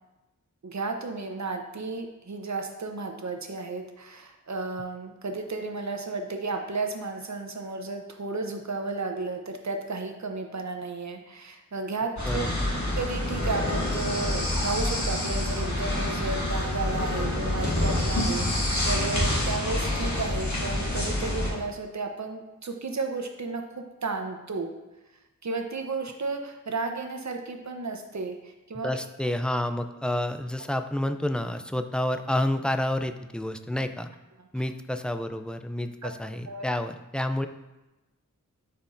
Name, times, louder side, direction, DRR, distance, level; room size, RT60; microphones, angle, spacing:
voice 1, 0.6-12.4 13.0-24.7 25.4-28.9 36.0-36.2 36.4-36.7, right 3 dB, 60° right, 4 dB, 0.8 m, -33 dB
sound 1, 12.2-21.5, left 1 dB, 65° left, 1.8 m, -27 dB
voice 2, 28.8-34.1 34.5-37.5, left 1 dB, 5° left, 8 dB, 0.4 m, -29 dB
10.5 x 4.4 x 2.6 m, 1.0 s
wide cardioid pair, 60°, 31 cm